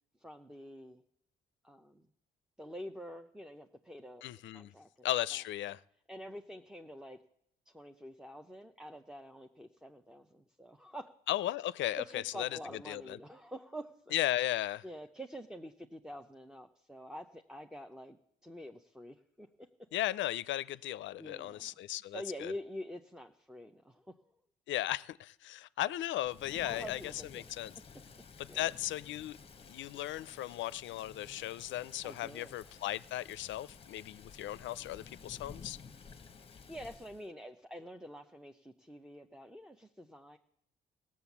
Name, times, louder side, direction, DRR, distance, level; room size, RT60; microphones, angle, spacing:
voice 1, 0.2-1.0 1.6-2.1 2.6-4.2 4.5-4.9 6.1-7.2 7.7-11.1 12.0-14.1 14.8-18.2 18.4-19.9 21.2-21.7 22.1-24.1 26.6-27.5 28.5-28.7 31.3-31.4 32.0-32.5 36.7-40.4, equal, 5° right, 0.5 m, -47 dB
voice 2, 4.2-4.7 5.0-5.8 11.3-13.2 14.1-14.8 19.9-22.5 24.7-27.7 28.4-29.4 29.7-35.8, left 14 dB, 70° left, 0.4 m, -36 dB
Thunder / Rain, 26.2-37.3, left 5 dB, 30° left, 0.8 m, -53 dB
16.5 x 7.3 x 7.1 m
cardioid pair, 90°, 20 cm